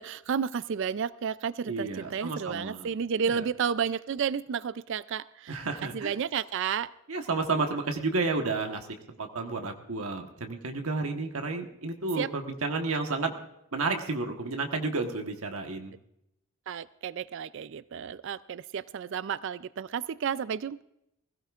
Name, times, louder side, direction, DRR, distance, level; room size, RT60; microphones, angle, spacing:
voice 1, 0.0-6.9 12.2-12.3 16.7-20.8, right 7 dB, 55° right, 17 dB, 0.4 m, -32 dB
voice 2, 1.6-2.9 3.2-3.4 5.5-6.1 7.1-8.9 9.2-13.3 13.7-15.9, right 3 dB, 75° right, 4 dB, 1.3 m, -31 dB
20.5 x 16.5 x 2.5 m, 0.82 s
head